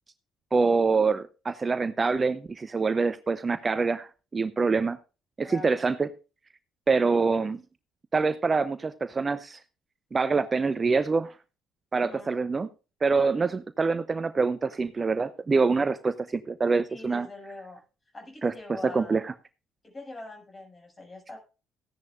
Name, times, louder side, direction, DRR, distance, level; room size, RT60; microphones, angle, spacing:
voice 1, 0.5-5.0 5.4-6.1 6.9-7.6 8.1-9.6 10.1-11.3 11.9-12.7 13.0-17.3 18.4-19.2, right 4 dB, 30° right, 14 dB, 0.7 m, -25 dB
voice 2, 5.4-5.8 11.9-12.3 16.9-17.8 18.1-19.2 19.8-21.4, left 2 dB, 25° left, 3 dB, 6.9 m, -43 dB
15.5 x 10.5 x 2.5 m, 0.32 s
figure-of-eight pair, 50°, 0 cm